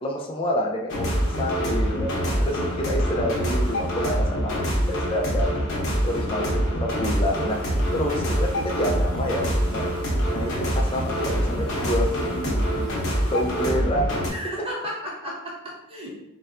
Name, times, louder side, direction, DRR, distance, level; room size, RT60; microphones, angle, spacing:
voice 1, 0.0-2.1 2.4-4.6 4.9-5.5 6.0-7.6 7.9-9.9 10.3-12.6 13.3-14.2, left 1 dB, 25° left, 0 dB, 0.3 m, -28 dB
sound 1, 0.9-14.3, equal, 55° left, 0.8 m, -25 dB
voice 2, 2.2-2.6 14.3-16.2, equal, 25° right, -4 dB, 0.7 m, -35 dB
sound 2, 7.5-13.7, right 4 dB, 90° right, 0.6 m, -45 dB
3.9 x 2.1 x 2.4 m, 0.88 s
head